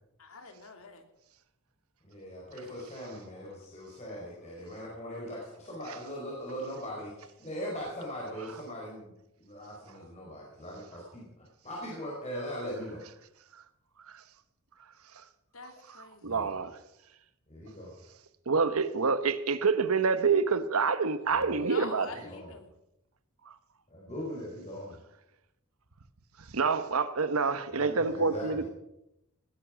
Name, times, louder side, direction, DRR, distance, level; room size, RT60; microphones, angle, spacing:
voice 1, 0.2-1.0 15.5-16.5 21.6-22.7, left 3 dB, 70° left, 2.8 m, -45 dB
voice 2, 2.1-9.1 9.4-11.3 11.6-13.0 16.2-16.5 17.5-17.9 21.3-21.7 22.2-22.5 23.9-25.0 27.7-28.6, equal, 30° left, 4.9 m, -40 dB
voice 3, 16.2-16.8 18.5-22.1 26.5-28.6, right 5 dB, 75° right, 1.1 m, -27 dB
19.0 x 11.0 x 6.3 m
head